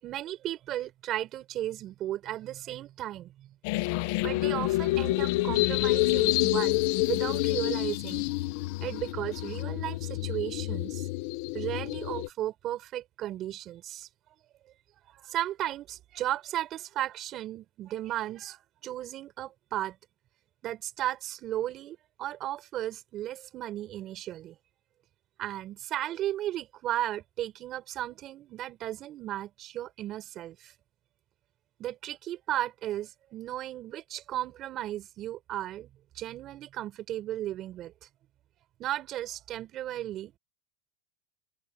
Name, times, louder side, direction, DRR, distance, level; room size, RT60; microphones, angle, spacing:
voice 1, 0.0-3.5 4.2-8.3 8.8-11.1 11.5-14.1 15.1-20.0 20.6-24.6 25.4-30.7 31.8-35.9 36.1-37.9 38.8-40.4, right 13 dB, 35° right, 5.8 m, -35 dB
sound 1, 3.6-12.3, left 20 dB, 60° left, 1.4 m, -28 dB
open air
supercardioid pair, 140°, 0 cm